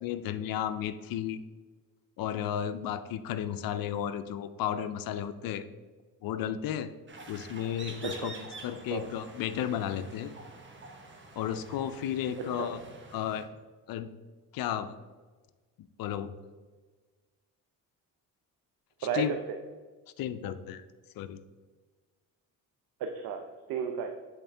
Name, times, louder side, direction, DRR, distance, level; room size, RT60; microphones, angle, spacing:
voice 1, 0.0-1.4 2.2-5.7 6.2-6.9 7.3-10.3 11.4-12.8 13.1-13.5 13.9-14.1 14.5-15.0 15.8-16.3 19.1-19.3 20.2-20.8 21.2-21.4, left 10 dB, 70° left, 11 dB, 0.5 m, -33 dB
sound 1, 7.1-13.4, right 3 dB, 30° right, 1.0 m, -47 dB
voice 2, 19.0-19.4 23.0-24.1, right 7 dB, 75° right, 4 dB, 0.6 m, -33 dB
8.0 x 3.7 x 3.3 m, 1.4 s
cardioid pair, 85°, 36 cm